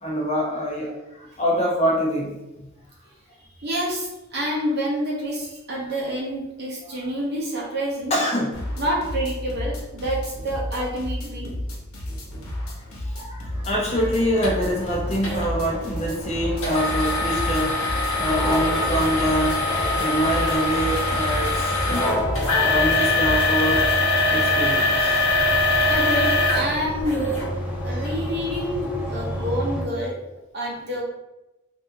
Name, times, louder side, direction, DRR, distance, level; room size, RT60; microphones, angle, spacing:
voice 1, 0.0-2.4 6.9-7.0 8.1-8.7 13.0-17.8 18.2-19.7 20.0-22.3 22.6-23.8 24.3-25.2, equal, 30° left, -3 dB, 0.7 m, -25 dB
voice 2, 3.6-8.1 8.8-11.5 25.9-27.3 27.8-30.1 30.5-31.0, equal, 50° right, -3 dB, 0.6 m, -28 dB
sound 1, 8.5-24.1, left 1 dB, 90° left, 1.0 m, -33 dB
sound 2, 13.5-29.9, equal, 5° right, 0.4 m, -31 dB
sound 3, 14.4-14.5 15.2-15.5 16.6-27.5 28.0-28.1 28.7-28.9, left 2 dB, 65° left, 1.1 m, -23 dB
3.4 x 2.5 x 2.7 m, 0.99 s
head